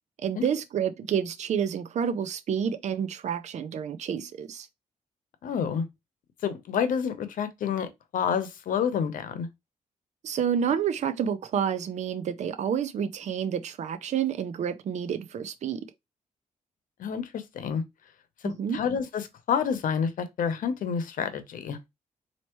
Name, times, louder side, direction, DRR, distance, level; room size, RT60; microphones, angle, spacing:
voice 1, 0.2-4.7 10.2-15.8 18.4-18.8, right 8 dB, 60° right, 0.5 m, -29 dB
voice 2, 5.4-5.8 6.4-9.5 17.0-17.8 18.4-21.8, left 7 dB, 85° left, 0.8 m, -29 dB
4.4 x 2.8 x 3.0 m
wide cardioid pair, 140°, 14 cm